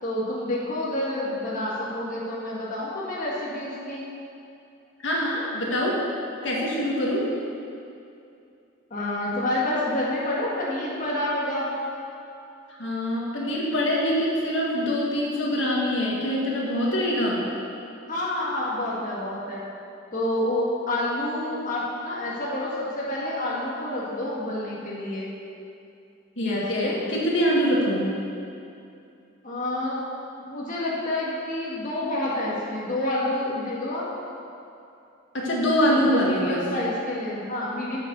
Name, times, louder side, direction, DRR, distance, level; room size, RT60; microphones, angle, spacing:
voice 1, 0.0-4.0 8.9-11.7 18.1-19.6 20.1-25.3 26.4-27.0 29.4-30.0 30.4-34.1 36.0-38.0, left 1 dB, 40° left, -6 dB, 1.6 m, -28 dB
voice 2, 5.0-6.0 6.4-7.2 12.7-17.4 26.4-28.1 35.3-36.6, equal, 65° left, -3 dB, 1.8 m, -24 dB
8.6 x 7.1 x 6.9 m, 2.6 s
head